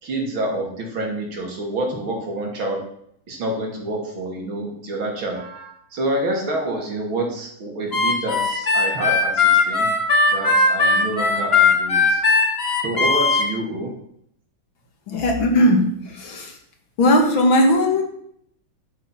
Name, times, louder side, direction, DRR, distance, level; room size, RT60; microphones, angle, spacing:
voice 1, 0.0-2.8 3.3-9.9 10.3-12.2 12.8-13.9, right 1 dB, 75° right, 0 dB, 3.4 m, -27 dB
Harmonica, 7.9-13.4, left 4 dB, 30° left, 2.1 m, -18 dB
voice 2, 15.1-16.6 17.0-18.0, left 1 dB, 70° left, 3 dB, 2.6 m, -18 dB
10.5 x 7.7 x 5.9 m, 0.69 s
omnidirectional pair, 2.2 m